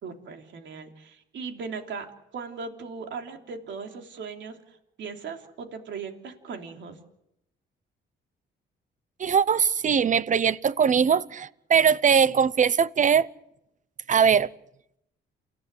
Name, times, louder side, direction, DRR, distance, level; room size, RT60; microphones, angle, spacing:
voice 1, 0.0-2.1 2.3-7.0, right 5 dB, 70° right, 3.2 m, -38 dB
voice 2, 9.2-13.3 14.1-14.5, right 7 dB, 40° right, 0.8 m, -21 dB
28.5 x 16.0 x 8.3 m
cardioid pair, 90°, 20 cm